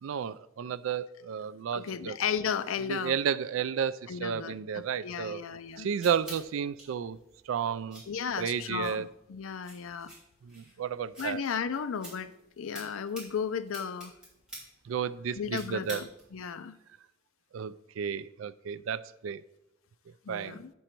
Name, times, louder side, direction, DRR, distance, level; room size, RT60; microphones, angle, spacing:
voice 1, 0.0-2.2 2.9-5.4 5.8-7.2 7.5-8.0 8.4-9.1 10.4-11.4 14.9-16.0 17.5-19.4 20.3-20.6, right 7 dB, 70° right, 17 dB, 0.3 m, -32 dB
voice 2, 1.7-3.2 4.1-5.9 8.1-10.1 11.2-14.1 15.3-16.7 20.2-20.7, left 7 dB, 80° left, 13 dB, 0.5 m, -35 dB
sound 1, 5.4-16.5, right 1 dB, 5° right, 3.1 m, -50 dB
7.9 x 6.2 x 4.4 m, 0.87 s
head